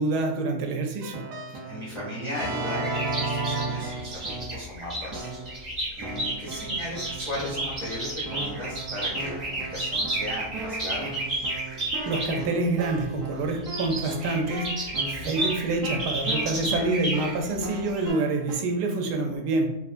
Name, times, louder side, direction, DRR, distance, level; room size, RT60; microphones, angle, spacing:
voice 1, 0.0-1.3 11.8-19.8, right 2 dB, 80° right, 3 dB, 1.2 m, -27 dB
Keyboard (musical), 1.0-4.7 5.1-5.6 6.0-18.5, right 3 dB, 65° right, 0.9 m, -36 dB
voice 2, 1.5-5.3 6.0-11.1, left 1 dB, 50° left, -7 dB, 0.3 m, -36 dB
sound 1, 2.7-12.4 13.5-18.1, right 1 dB, 35° right, 0.7 m, -32 dB
3.2 x 2.4 x 2.4 m, 0.87 s
omnidirectional pair, 1.7 m